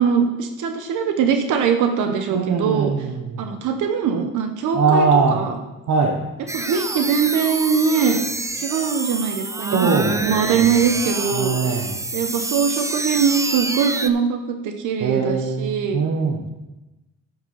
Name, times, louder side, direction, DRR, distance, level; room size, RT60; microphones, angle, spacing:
voice 1, 0.0-2.9 3.4-5.6 6.5-8.2 8.6-11.8 12.1-16.0, right 6 dB, 85° right, 5 dB, 1.0 m, -22 dB
voice 2, 2.3-3.5 4.7-5.4 5.9-6.2 9.7-10.6 11.3-12.0 15.0-16.4, right 4 dB, 70° right, 2 dB, 1.3 m, -21 dB
sound 1, 6.5-14.1, right 2 dB, 10° right, 0.5 m, -27 dB
9.1 x 6.0 x 5.7 m, 1.0 s
cardioid pair, 90°, 30 cm